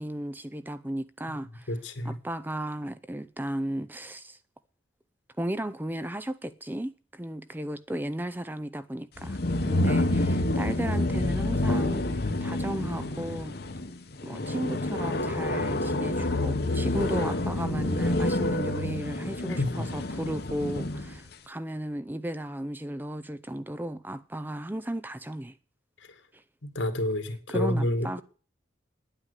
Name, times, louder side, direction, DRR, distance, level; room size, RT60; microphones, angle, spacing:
voice 1, 0.0-1.7 2.0-4.4 5.4-13.6 14.2-25.5 26.3-26.4 27.5-28.2, right 1 dB, 10° right, 0.5 m, -35 dB
voice 2, 1.7-2.2 19.5-19.9 26.6-28.1, left 1 dB, 75° left, 2.1 m, -29 dB
sound 1, 9.2-21.2, left 1 dB, 55° left, 1.1 m, -28 dB
10.0 x 9.0 x 8.2 m
head